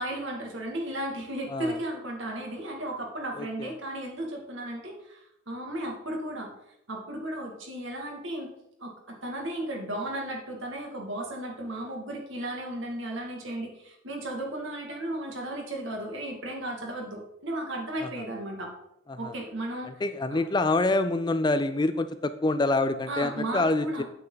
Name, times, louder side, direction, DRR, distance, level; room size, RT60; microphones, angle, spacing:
voice 1, 0.0-6.5 6.9-8.5 8.8-18.7 19.2-20.0 20.3-20.4 23.1-24.0, right 1 dB, 55° right, 1 dB, 2.4 m, -35 dB
voice 2, 3.4-3.7 18.0-18.1 19.1-19.3 20.0-24.0, left 2 dB, 20° left, 11 dB, 0.3 m, -26 dB
9.2 x 8.4 x 4.0 m, 0.80 s
head